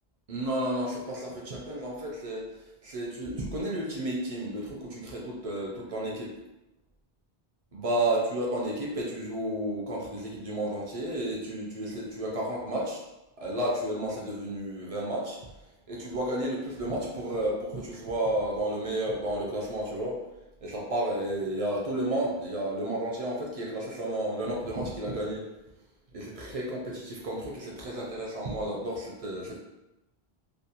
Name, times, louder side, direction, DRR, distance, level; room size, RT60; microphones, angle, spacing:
voice 1, 0.3-2.5 2.8-6.3 7.7-13.0 13.4-15.4 15.9-20.2 20.6-25.5 26.1-29.6, right 1 dB, 45° right, -3 dB, 0.5 m, -32 dB
2.5 x 2.0 x 2.7 m, 0.97 s
omnidirectional pair, 1.0 m